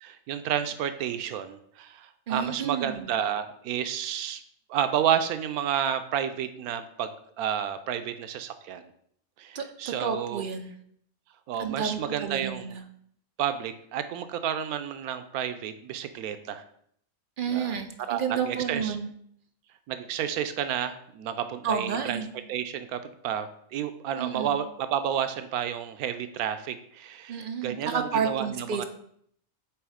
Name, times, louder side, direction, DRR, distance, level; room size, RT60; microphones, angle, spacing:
voice 1, 0.0-4.4 4.7-7.1 7.4-8.8 9.4-10.4 11.5-12.8 13.4-16.6 17.5-17.8 18.1-19.0 19.9-22.2 22.5-28.8, right 9 dB, 90° right, 10 dB, 1.1 m, -31 dB
voice 2, 2.3-3.1 9.5-10.7 11.6-12.8 17.4-19.1 21.6-22.3 24.2-24.6 27.3-28.8, right 6 dB, 60° right, 6 dB, 0.5 m, -31 dB
8.1 x 3.1 x 4.9 m, 0.67 s
omnidirectional pair, 1.5 m